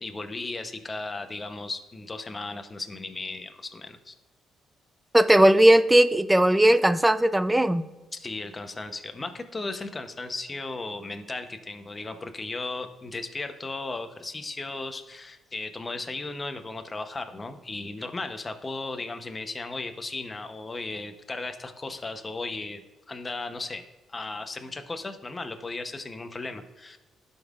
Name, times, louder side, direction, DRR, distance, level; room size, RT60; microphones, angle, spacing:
voice 1, 0.0-4.1 8.1-22.8 23.1-23.8 24.1-27.0, left 3 dB, 25° left, 7 dB, 0.8 m, -36 dB
voice 2, 5.1-7.8, right 1 dB, 10° right, 13 dB, 0.4 m, -18 dB
11.5 x 5.4 x 2.4 m, 1.1 s
cardioid pair, 90°, 0 cm